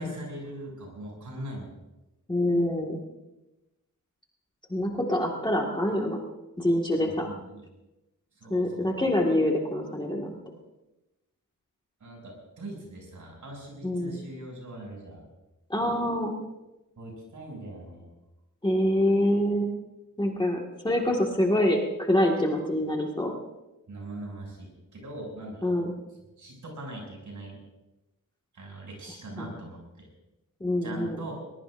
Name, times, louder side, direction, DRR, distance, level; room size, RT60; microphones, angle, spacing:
voice 1, 0.0-1.7 6.9-7.6 8.4-8.9 12.0-15.2 17.0-18.1 23.9-25.7 26.4-27.6 28.5-30.1 30.8-31.3, right 1 dB, 65° right, 0 dB, 6.9 m, -41 dB
voice 2, 2.3-3.0 4.7-6.2 6.6-7.3 8.5-10.4 13.8-14.2 15.7-16.3 18.6-19.7 20.2-20.6 20.8-23.3 25.6-25.9 29.4-29.5 30.6-31.2, left 1 dB, 15° left, -1 dB, 1.9 m, -25 dB
22.5 x 21.0 x 2.6 m, 1.0 s
wide cardioid pair, 170°, 33 cm